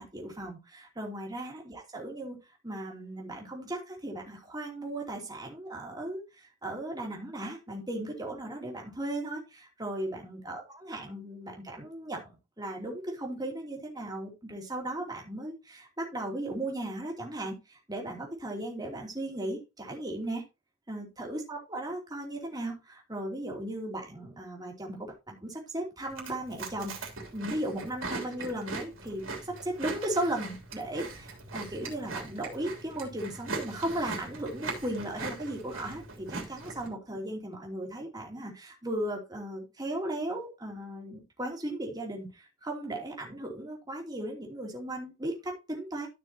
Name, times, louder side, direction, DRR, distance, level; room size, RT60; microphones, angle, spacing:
voice 1, 0.0-2.4 2.6-6.2 6.6-20.4 20.9-26.9 27.3-46.1, right 1 dB, 20° right, 0 dB, 2.8 m, -36 dB
Chewing mastication, 26.1-36.9, right 3 dB, 75° right, 3.3 m, -40 dB
13.0 x 6.1 x 2.9 m, 0.25 s
head